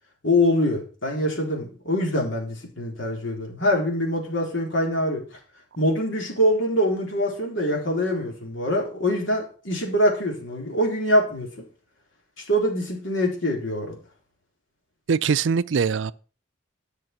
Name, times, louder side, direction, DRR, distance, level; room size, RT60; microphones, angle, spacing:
voice 1, 0.2-5.2 5.8-11.5 12.5-14.0, left 1 dB, 70° left, 3.8 m, -24 dB
voice 2, 15.1-16.1, right 6 dB, 70° right, 0.4 m, -22 dB
11.0 x 6.6 x 6.0 m
head